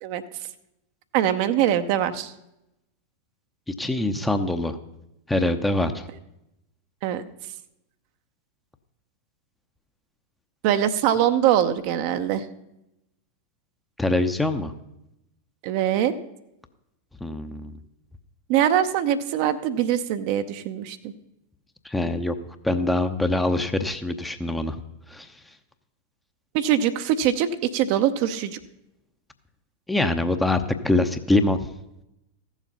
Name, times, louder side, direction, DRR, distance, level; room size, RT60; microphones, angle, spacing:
voice 1, 1.1-2.3 7.0-7.2 10.6-12.4 15.6-16.1 18.5-21.1 26.5-28.6, right 10 dB, 45° right, 9 dB, 0.7 m, -23 dB
voice 2, 3.8-4.8 5.3-6.1 14.0-14.7 17.2-17.8 21.8-22.4 22.6-24.8 25.1-25.3 29.9-31.7, left 2 dB, 5° left, 8 dB, 0.8 m, -24 dB
15.0 x 7.3 x 5.5 m, 0.86 s
figure-of-eight pair, 90°, 0 cm